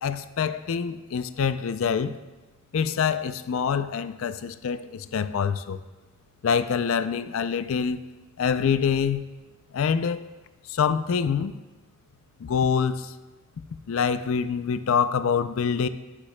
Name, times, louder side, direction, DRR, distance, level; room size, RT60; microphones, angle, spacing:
voice 1, 0.0-2.1 2.7-5.8 6.4-8.0 8.4-9.3 9.7-10.2 10.7-11.6 12.4-13.1 13.9-15.9, left 6 dB, 70° left, 12 dB, 0.4 m, -25 dB
11.0 x 9.5 x 2.2 m, 1.2 s
head